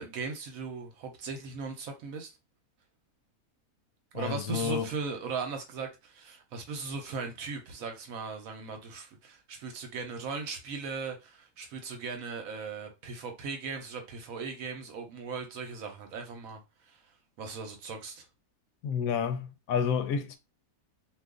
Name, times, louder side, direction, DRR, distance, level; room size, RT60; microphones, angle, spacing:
voice 1, 0.0-2.3 4.1-16.6 16.9-17.0 17.4-18.2, right 4 dB, 75° right, 1.2 m, -38 dB
voice 2, 4.1-4.9 18.8-20.4, left 7 dB, 80° left, 1.0 m, -30 dB
2.6 x 2.4 x 3.6 m
omnidirectional pair, 1.5 m